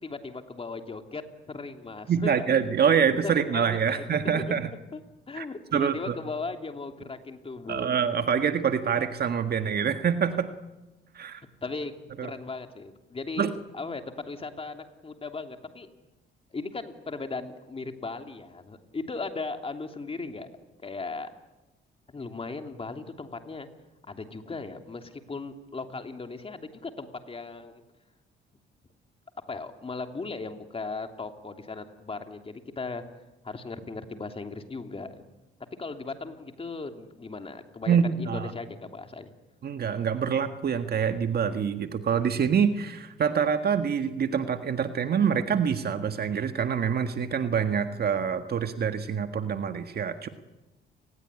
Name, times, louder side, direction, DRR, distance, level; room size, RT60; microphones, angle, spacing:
voice 1, 0.0-2.4 3.0-5.0 5.3-7.9 11.6-11.9 12.2-15.9 16.5-20.5 20.8-21.3 22.1-23.7 24.1-27.8 29.5-33.0 33.4-35.2 35.8-39.3, left 3 dB, 30° left, 6 dB, 3.1 m, -37 dB
voice 2, 2.1-4.7 5.4-5.5 5.7-6.2 7.7-10.5 11.1-11.4 12.2-12.3 13.4-13.5 37.9-38.5 39.6-50.3, right 7 dB, 50° right, 8 dB, 1.6 m, -26 dB
30.0 x 20.0 x 9.9 m, 1.1 s
cardioid pair, 90°, 20 cm